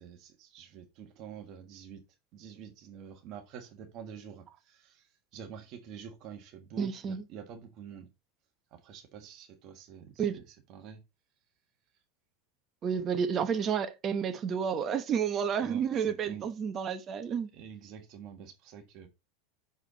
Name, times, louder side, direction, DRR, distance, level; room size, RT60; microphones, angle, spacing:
voice 1, 0.0-2.0 2.3-8.1 8.7-11.0 15.6-16.5 17.5-19.1, right 8 dB, 50° right, 1.4 m, -47 dB
voice 2, 6.8-7.2 10.2-10.3 12.8-17.5, right 7 dB, 30° right, 0.9 m, -30 dB
6.3 x 4.8 x 3.9 m
supercardioid pair, 135°, 0 cm